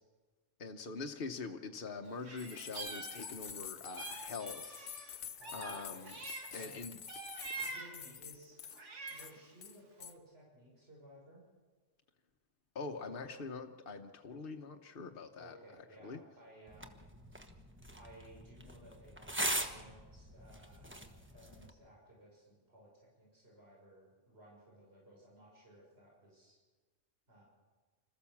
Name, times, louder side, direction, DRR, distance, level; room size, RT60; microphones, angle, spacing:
voice 1, 0.6-6.1 6.5-7.0 12.7-15.6 16.0-16.2, left 4 dB, 50° left, 3 dB, 1.2 m, -44 dB
Meow, 2.2-3.6 3.9-6.7 7.1-8.1 8.6-9.4, right 3 dB, 85° right, 2.1 m, -46 dB
sound 1, 2.4-8.8 9.1-9.3 9.6-10.1, left 8 dB, 85° left, 1.2 m, -48 dB
voice 2, 7.6-8.8 9.1-11.4 13.0-13.3 15.4-17.1 17.9-26.6 27.3-27.4, right 1 dB, 60° right, -4 dB, 7.0 m, -58 dB
sound 2, 16.7-21.7, right 1 dB, 10° right, 1.2 m, -41 dB
26.5 x 14.5 x 7.2 m, 1.3 s
omnidirectional pair, 1.2 m